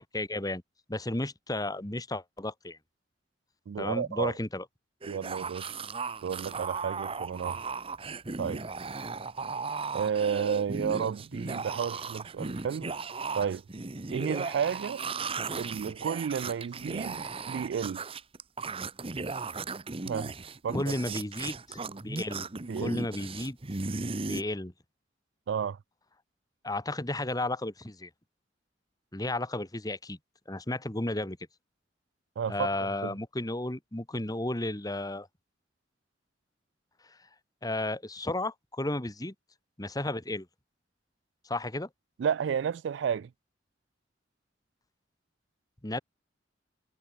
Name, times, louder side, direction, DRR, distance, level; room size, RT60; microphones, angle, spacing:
voice 1, 0.1-0.6 0.9-2.8 3.8-4.6 20.7-22.5 22.8-23.6 24.3-24.7 26.6-28.1 29.1-30.2 30.5-31.4 32.5-35.3 37.1-37.2 37.6-39.3 39.8-40.5 41.4-41.9 45.8-46.0, left 1 dB, 20° left, 1.7 m, -33 dB
voice 2, 3.7-4.3 5.1-5.8 6.2-7.6 8.4-8.6 9.9-12.9 13.3-13.6 14.1-15.0 15.6-18.1 20.1-20.3 20.6-20.8 22.7-23.0 25.5-25.8 32.4-33.1 42.2-43.3, right 7 dB, 75° right, 0.3 m, -32 dB
sound 1, 5.0-24.4, right 4 dB, 30° right, 0.9 m, -36 dB
head